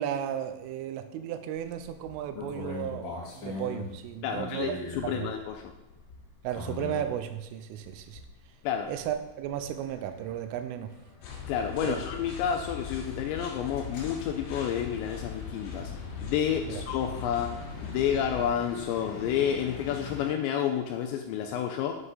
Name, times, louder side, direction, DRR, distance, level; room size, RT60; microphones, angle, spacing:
voice 1, 0.0-4.7 5.0-5.3 6.4-8.2 8.9-10.9 11.8-12.0 16.7-16.8, right 10 dB, 80° right, 8 dB, 3.2 m, -34 dB
sound 1, 1.6-7.3 7.8-8.4 8.8-20.3, left 3 dB, 45° left, 2.7 m, -43 dB
voice 2, 4.2-5.6 8.6-8.9 11.5-15.9 16.2-17.5 17.8-22.0, left 9 dB, 90° left, 4 dB, 2.6 m, -30 dB
sound 2, 11.2-18.5, left 6 dB, 65° left, 3.7 m, -40 dB
10.0 x 7.8 x 4.1 m, 0.97 s
omnidirectional pair, 5.8 m